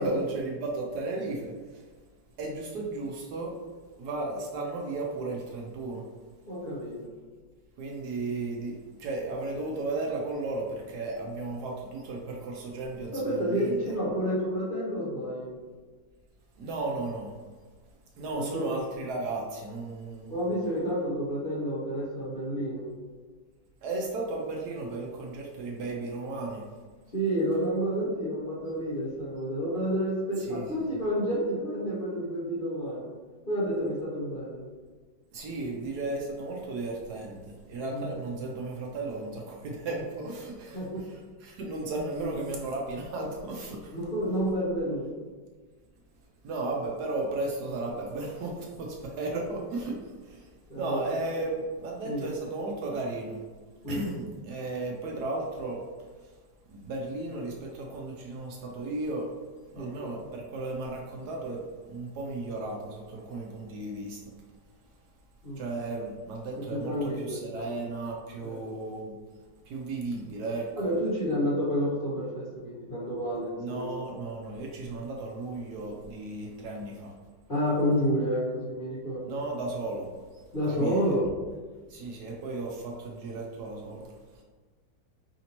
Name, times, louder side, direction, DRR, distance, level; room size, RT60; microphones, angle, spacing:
voice 1, 0.0-1.9 2.4-3.6 4.0-6.0 7.8-13.9 16.6-17.4 18.2-20.4 23.8-26.7 30.4-30.7 35.3-44.0 46.4-53.4 53.9-55.8 56.2-56.3 56.7-59.3 59.7-64.3 65.6-69.2 69.6-70.7 73.6-77.1 79.2-81.1 81.9-84.4, right 2 dB, 70° right, -1 dB, 1.1 m, -35 dB
voice 2, 6.5-7.1 13.1-15.5 18.3-18.7 20.3-22.9 27.1-33.1 33.5-34.6 37.9-38.1 40.7-41.0 42.2-42.3 43.9-45.1 50.7-51.0 52.0-52.3 53.8-54.1 59.7-60.0 65.4-65.6 66.7-67.8 68.4-68.6 70.8-73.9 77.5-79.3 80.5-81.3, equal, 40° left, -9 dB, 0.9 m, -30 dB
5.0 x 2.7 x 2.9 m, 1.4 s
omnidirectional pair, 1.9 m